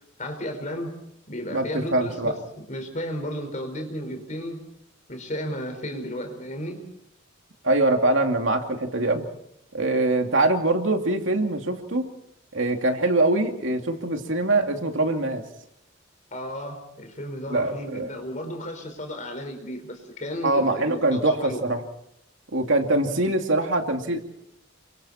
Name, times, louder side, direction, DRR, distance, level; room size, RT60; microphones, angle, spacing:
voice 1, 0.2-1.0 1.3-2.4 2.7-4.6 5.1-6.9 16.3-21.6, equal, 40° left, 5 dB, 5.0 m, -33 dB
voice 2, 1.5-2.3 7.6-9.2 9.7-12.1 12.5-15.4 17.5-18.1 20.4-21.8 22.5-24.2, right 2 dB, 70° right, 4 dB, 2.7 m, -23 dB
29.0 x 24.5 x 4.4 m, 0.76 s
head